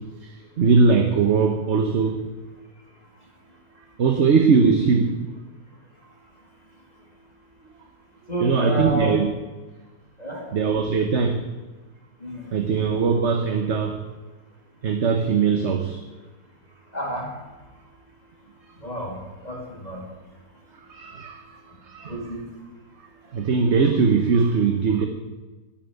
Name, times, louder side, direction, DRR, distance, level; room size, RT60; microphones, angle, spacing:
voice 1, 0.2-2.3 4.0-5.3 8.4-9.3 10.5-11.4 12.5-14.0 14.8-16.0 20.9-21.4 21.8-22.2 23.3-25.1, right 5 dB, 50° right, 6 dB, 1.2 m, -20 dB
voice 2, 8.3-9.2 10.2-10.5 12.2-12.5 16.9-17.3 18.8-19.2 19.4-20.0 22.1-22.4, right 1 dB, 25° left, -1 dB, 2.5 m, -29 dB
12.0 x 11.0 x 9.2 m, 1.2 s
omnidirectional pair, 1.7 m